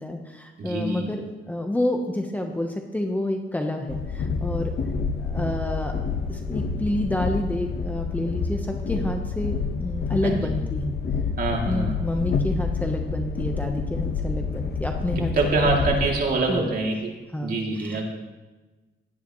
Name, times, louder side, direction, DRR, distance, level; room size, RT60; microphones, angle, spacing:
voice 1, 0.0-4.7 5.2-5.9 6.3-10.9 11.7-15.9 16.5-16.7 17.3-18.0, left 1 dB, 10° left, 3 dB, 1.0 m, -29 dB
voice 2, 0.6-1.0 10.2-10.5 11.4-12.0 15.4-17.1 17.4-18.1, right 3 dB, 55° right, -1 dB, 2.8 m, -25 dB
Train, 3.9-16.1, left 4 dB, 60° left, 1.2 m, -28 dB
17.0 x 12.0 x 3.1 m, 1.2 s
cardioid pair, 110°, 18 cm